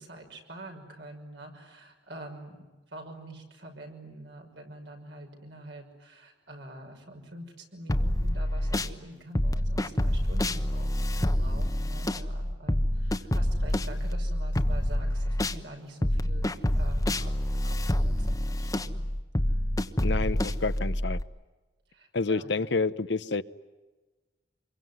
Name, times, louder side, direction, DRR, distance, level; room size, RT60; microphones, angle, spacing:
voice 1, 0.0-17.3 17.6-19.0 21.9-22.5, right 1 dB, 70° right, 3 dB, 6.0 m, -46 dB
sound 1, 7.9-8.9 9.4-15.6 16.0-21.2, left 1 dB, 20° left, 1.1 m, -27 dB
voice 2, 20.0-21.2 22.1-23.4, left 3 dB, 70° left, 14 dB, 0.9 m, -29 dB
27.0 x 23.0 x 9.5 m, 1.2 s
head